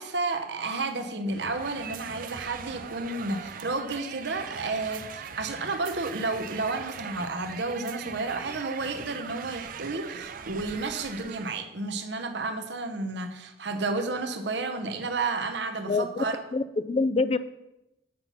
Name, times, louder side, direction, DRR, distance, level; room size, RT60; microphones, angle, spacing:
voice 1, 0.0-16.4, right 3 dB, 65° right, 7 dB, 0.9 m, -31 dB
sound 1, 1.3-11.7, right 7 dB, 45° right, 0.4 m, -41 dB
voice 2, 15.9-16.2 16.5-17.4, left 3 dB, 30° left, 13 dB, 0.4 m, -25 dB
7.8 x 5.7 x 5.5 m, 0.91 s
head